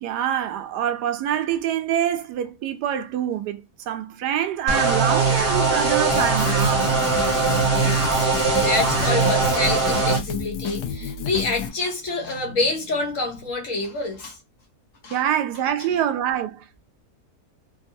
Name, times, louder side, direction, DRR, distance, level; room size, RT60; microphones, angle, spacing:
voice 1, 0.0-7.0 15.1-16.8, right 10 dB, 85° right, 1.2 m, -25 dB
sound 1, 4.7-10.2, right 4 dB, 40° right, 1.0 m, -21 dB
sound 2, 4.8-9.8, left 2 dB, 5° left, 0.9 m, -35 dB
Drum kit, 6.1-11.7, left 7 dB, 90° left, 1.2 m, -31 dB
voice 2, 8.5-14.4 15.0-15.2 15.8-15.9, left 3 dB, 60° left, 1.2 m, -27 dB
3.5 x 2.3 x 2.6 m
omnidirectional pair, 1.7 m